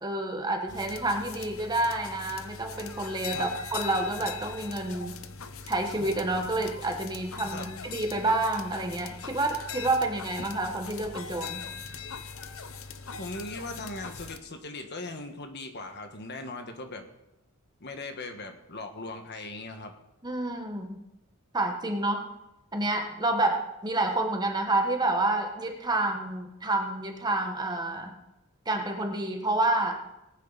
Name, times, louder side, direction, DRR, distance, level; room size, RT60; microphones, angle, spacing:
voice 1, 0.0-5.2 5.7-11.6 20.2-21.0 21.5-22.2 22.7-28.1 28.6-30.0, right 2 dB, 20° right, 4 dB, 1.3 m, -29 dB
sound 1, 0.7-14.4, left 5 dB, 65° left, 0.8 m, -41 dB
voice 2, 13.2-17.1 17.8-19.9, left 2 dB, 50° left, 5 dB, 1.5 m, -39 dB
19.5 x 9.3 x 4.1 m, 0.92 s
head